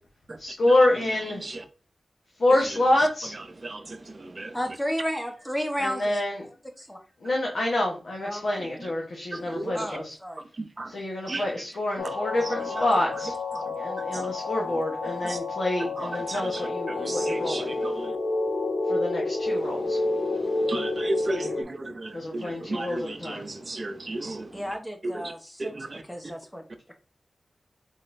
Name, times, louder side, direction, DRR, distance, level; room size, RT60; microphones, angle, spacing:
voice 1, 0.4-1.4 2.4-3.3 5.8-6.4 7.2-10.1 10.9-13.3 13.8-17.7 18.9-20.0 22.1-23.5, left 1 dB, 65° left, 1.1 m, -27 dB
voice 2, 3.6-4.5 9.3-9.8 10.8-10.9 11.3-11.4 12.7-12.9 14.1-14.3 14.7-14.8 15.2-15.4 16.0-16.6 16.9-18.1 20.3-24.5 25.0-25.1 25.6-26.0, right 2 dB, 45° right, 0.6 m, -34 dB
voice 3, 4.5-6.2 6.8-7.0 8.2-8.6 9.7-10.4 24.5-26.6 26.9-27.0, equal, 5° left, 1.1 m, -33 dB
sound 1, 12.0-21.6, left 2 dB, 90° left, 1.0 m, -29 dB
4.1 x 4.0 x 2.6 m
cardioid pair, 55°, 0 cm